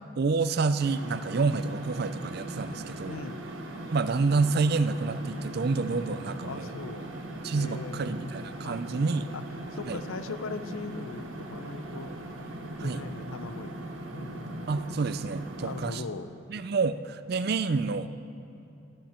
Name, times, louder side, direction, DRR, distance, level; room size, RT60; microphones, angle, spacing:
voice 1, 0.2-3.2 3.9-6.7 7.4-9.3 9.9-10.0 12.8-13.0 14.7-16.0 16.5-18.1, right 4 dB, 50° right, 13 dB, 0.4 m, -28 dB
sound 1, 0.8-15.9, right 1 dB, 75° right, 1.3 m, -40 dB
voice 2, 3.1-3.4 6.4-7.1 7.6-12.1 12.8-14.7 15.6-16.3, left 4 dB, 85° left, 12 dB, 0.6 m, -40 dB
14.0 x 11.5 x 4.4 m, 2.8 s
head